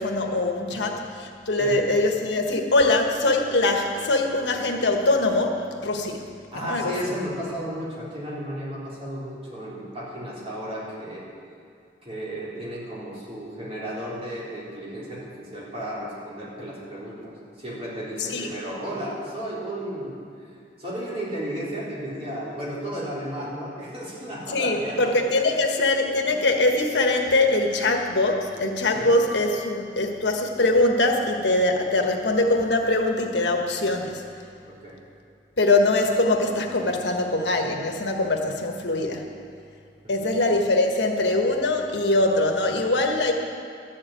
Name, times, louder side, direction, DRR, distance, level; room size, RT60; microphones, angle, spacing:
voice 1, 0.0-6.2 6.5-6.9 18.2-18.5 24.5-34.2 35.6-39.3 40.1-43.3, left 2 dB, 80° left, 3 dB, 1.3 m, -22 dB
voice 2, 6.5-11.2 12.0-20.2 20.8-25.1 25.5-25.9 26.2-26.3 28.9-29.1 34.7-35.0 40.0-40.3, equal, 35° right, -7 dB, 3.9 m, -34 dB
12.5 x 7.4 x 9.1 m, 2.4 s
head